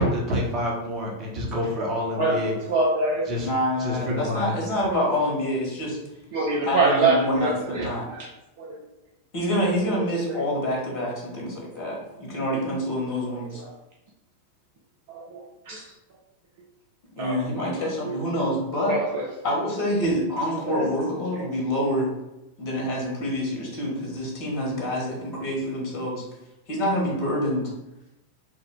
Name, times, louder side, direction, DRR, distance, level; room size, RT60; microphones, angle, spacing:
voice 1, 0.0-2.6 3.3-3.5 3.8-4.5 8.0-8.2, left 1 dB, 35° right, -2 dB, 1.0 m, -27 dB
voice 2, 2.2-3.3 6.3-7.9 8.6-8.8 15.1-15.8 17.2-17.7 18.9-19.2 20.7-20.9 21.3-21.4, right 3 dB, 50° right, -3 dB, 0.6 m, -24 dB
voice 3, 3.4-6.0 6.6-8.1 9.3-13.6 17.2-19.0 19.4-22.1 22.6-26.2 26.7-27.7, equal, 45° left, -2 dB, 1.2 m, -26 dB
3.5 x 2.1 x 3.6 m, 0.94 s
figure-of-eight pair, 90°, 0 cm